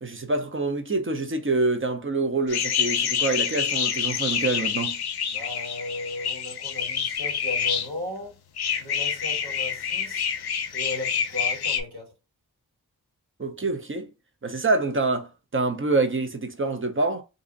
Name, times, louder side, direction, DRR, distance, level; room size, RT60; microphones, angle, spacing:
voice 1, 0.0-5.0 13.4-14.1 14.4-17.2, right 3 dB, 35° right, 0.6 m, -26 dB
sound 1, 2.5-7.9 8.6-11.8, left 7 dB, 80° left, 0.5 m, -27 dB
voice 2, 5.3-8.4 8.8-10.3 10.7-12.1, left 1 dB, 85° right, 1.8 m, -36 dB
2.7 x 2.5 x 3.8 m
wide cardioid pair, 60°, 38 cm